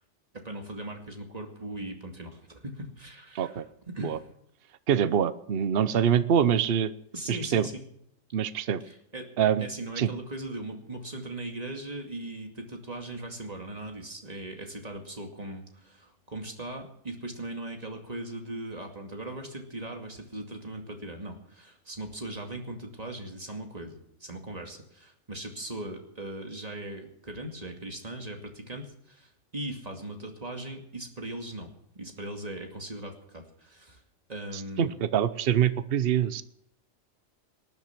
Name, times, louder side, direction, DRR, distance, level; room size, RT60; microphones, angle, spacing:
voice 1, 0.3-4.2 7.1-7.8 8.8-9.3 9.6-34.0 34.3-34.9, right 1 dB, 30° right, 3 dB, 2.5 m, -39 dB
voice 2, 3.3-3.6 4.0-4.2 4.9-6.9 7.3-7.7 8.3-8.8 9.4-9.7 10.0-10.1 34.5-36.4, right 9 dB, 50° right, 13 dB, 0.9 m, -25 dB
19.5 x 10.5 x 6.0 m, 0.73 s
omnidirectional pair, 1.4 m